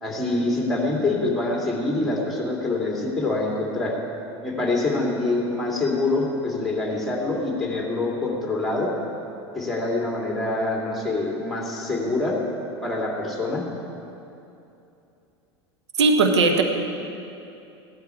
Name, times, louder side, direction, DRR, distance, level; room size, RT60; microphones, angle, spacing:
voice 1, 0.0-3.9 4.4-8.9 9.5-12.4 12.8-13.6, left 2 dB, ahead, -2 dB, 2.8 m, -25 dB
voice 2, 16.0-16.6, right 3 dB, 70° right, 5 dB, 1.0 m, -17 dB
15.5 x 11.5 x 4.6 m, 2.8 s
figure-of-eight pair, 80°, 15 cm